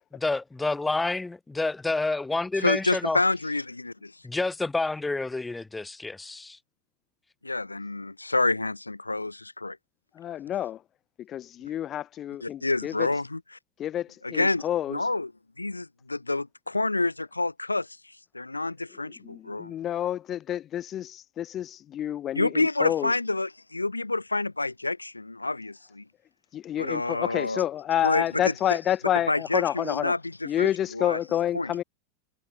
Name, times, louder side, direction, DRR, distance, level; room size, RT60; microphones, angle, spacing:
voice 1, 0.1-3.2 4.2-6.6, left 3 dB, 10° left, 2.9 m, -29 dB
voice 2, 2.6-4.1 7.4-9.8 12.4-13.4 14.2-14.6 14.9-15.3 15.6-17.9 18.3-19.7 22.3-26.0 26.8-27.6 28.0-28.5 29.3-31.2 31.5-31.7, left 2 dB, 85° left, 0.8 m, -28 dB
voice 3, 10.2-10.8 11.3-13.1 13.8-15.1 19.2-23.1 26.5-30.1 30.4-31.8, left 11 dB, 30° left, 0.8 m, -29 dB
figure-of-eight pair, 90°, 0 cm